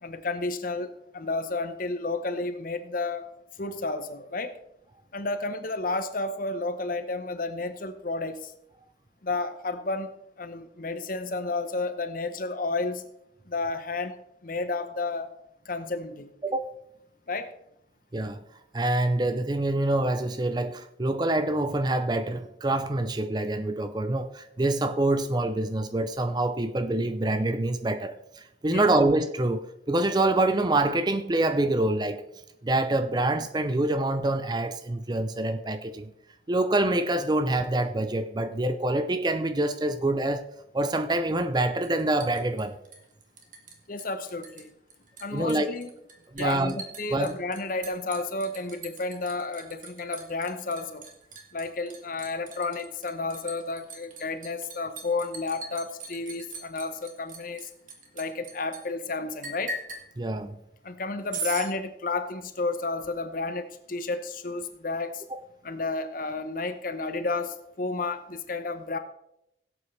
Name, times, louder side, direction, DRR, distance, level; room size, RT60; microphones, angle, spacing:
voice 1, 0.0-3.3 3.6-4.5 5.1-8.5 9.2-10.1 10.4-13.0 13.5-14.2 14.4-15.3 15.7-16.3 17.3-17.5 28.7-28.9 43.9-44.7 45.2-45.9 46.3-51.0 51.5-57.7 58.1-59.8 60.8-65.2 65.6-69.0, left 3 dB, 45° left, 0.9 m, -31 dB
voice 2, 16.4-16.7 18.1-18.4 18.7-32.2 32.6-36.1 36.5-40.4 40.7-42.8 45.3-45.7 46.3-46.8 47.1-47.3 60.2-60.6 65.3-65.4, right 2 dB, 20° right, 0.5 m, -26 dB
Liquid, 41.8-43.7 44.0-44.6 44.9-58.8 59.4-60.0 61.3-61.7, right 3 dB, 45° right, 1.8 m, -40 dB
17.0 x 8.2 x 3.3 m
head